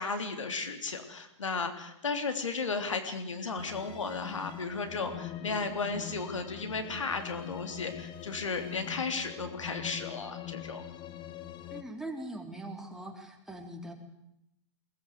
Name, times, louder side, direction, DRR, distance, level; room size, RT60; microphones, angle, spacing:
voice 1, 0.0-10.8, left 4 dB, 85° left, 7 dB, 3.4 m, -34 dB
sound 1, 3.6-11.8, left 11 dB, 30° left, 1.8 m, -43 dB
voice 2, 11.7-13.9, right 1 dB, 5° right, 1 dB, 4.1 m, -41 dB
22.0 x 19.5 x 8.0 m, 0.82 s
hypercardioid pair, 115°, 16 cm